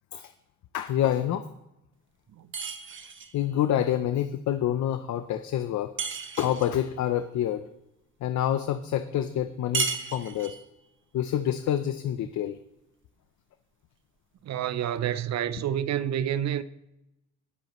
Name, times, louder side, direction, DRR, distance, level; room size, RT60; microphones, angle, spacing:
voice 1, 0.7-1.5 3.3-5.9 6.4-7.6 8.2-10.6 11.1-12.6, left 11 dB, 70° left, 0.7 m, -27 dB
sound 1, 2.5-3.4 6.0-6.8 9.7-10.7, right 5 dB, 40° right, 1.2 m, -33 dB
voice 2, 14.4-16.6, right 10 dB, 60° right, 0.7 m, -28 dB
19.5 x 7.9 x 3.1 m
cardioid pair, 90°, 30 cm